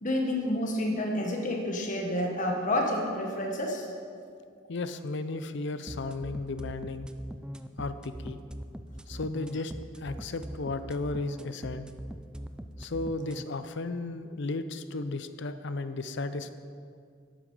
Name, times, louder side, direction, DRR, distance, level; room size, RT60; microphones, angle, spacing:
voice 1, 0.0-3.8, left 1 dB, 40° left, 1 dB, 1.5 m, -29 dB
voice 2, 4.7-7.1 7.8-8.4 9.1-9.7 10.0-11.9 12.8-16.5, left 3 dB, 60° left, 11 dB, 0.6 m, -34 dB
sound 1, 5.9-13.4, equal, 5° right, 0.3 m, -41 dB
11.5 x 8.7 x 4.9 m, 2.3 s
head